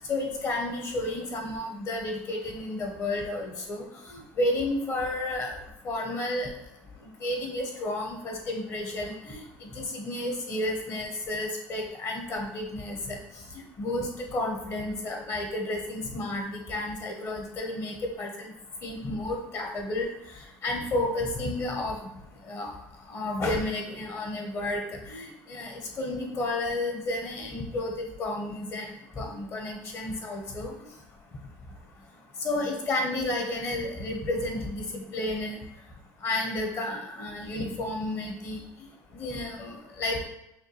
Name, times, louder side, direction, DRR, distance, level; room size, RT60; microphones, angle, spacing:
voice 1, 0.1-5.6 5.8-6.5 7.2-13.2 13.8-18.5 18.8-20.1 20.6-22.0 22.5-22.7 23.1-27.9 28.2-28.9 29.2-30.7 32.4-35.6 36.2-38.6 39.2-40.2, left 1 dB, 40° left, 1 dB, 1.1 m, -31 dB
5.5 x 2.2 x 3.2 m, 0.84 s
supercardioid pair, 115°, 7 cm